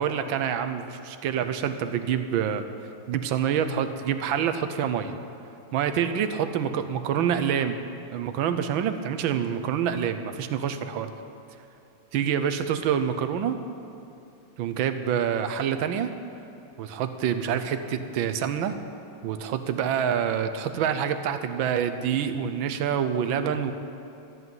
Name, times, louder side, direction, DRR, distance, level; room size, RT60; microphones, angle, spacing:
voice 1, 0.0-2.6 3.1-5.1 5.7-7.8 8.1-11.1 12.1-13.6 14.6-16.1 16.8-18.7 19.2-23.7, right 8 dB, 85° right, 9 dB, 1.5 m, -27 dB
13.0 x 8.1 x 9.4 m, 2.7 s
omnidirectional pair, 2.1 m